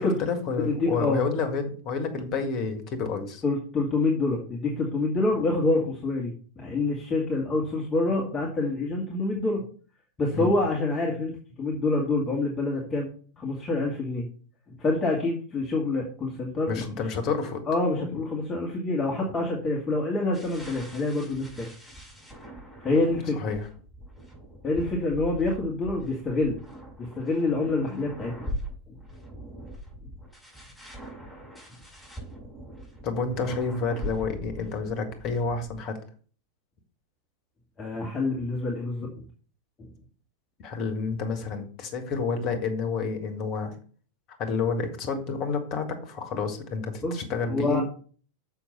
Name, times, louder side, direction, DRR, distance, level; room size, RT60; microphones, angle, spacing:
voice 1, 0.0-3.4 10.3-10.5 16.7-17.6 17.9-18.1 23.4-23.7 33.0-36.0 40.6-43.7 44.4-47.8, left 4 dB, 40° left, 7 dB, 1.9 m, -29 dB
voice 2, 0.7-1.2 3.4-9.6 10.2-11.3 11.6-13.1 13.4-14.3 14.8-17.0 17.7-21.7 22.8-23.5 24.6-26.6 27.0-28.5 37.8-39.1 39.8-39.9 47.0-47.2 47.5-47.8, left 2 dB, 20° left, -1 dB, 1.9 m, -26 dB
sound 1, 20.3-35.8, equal, ahead, 5.5 m, -42 dB
7.0 x 5.8 x 6.7 m, 0.43 s
figure-of-eight pair, 90°, 0 cm